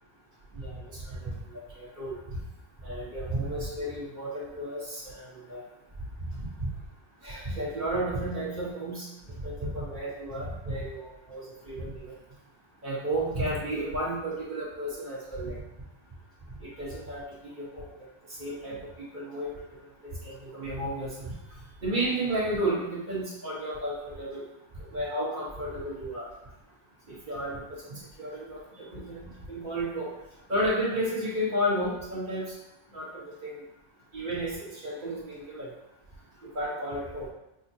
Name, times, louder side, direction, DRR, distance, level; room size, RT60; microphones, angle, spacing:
voice 1, 0.5-2.2 2.8-5.6 6.3-6.7 7.2-12.1 12.8-15.6 16.6-17.9 18.4-19.5 20.2-21.3 21.8-24.4 24.9-26.3 27.1-30.1 30.5-32.5 32.9-33.6 34.1-35.7 36.5-37.3, right 1 dB, 45° right, -7 dB, 1.4 m, -33 dB
6.3 x 2.2 x 2.7 m, 0.88 s
omnidirectional pair, 1.2 m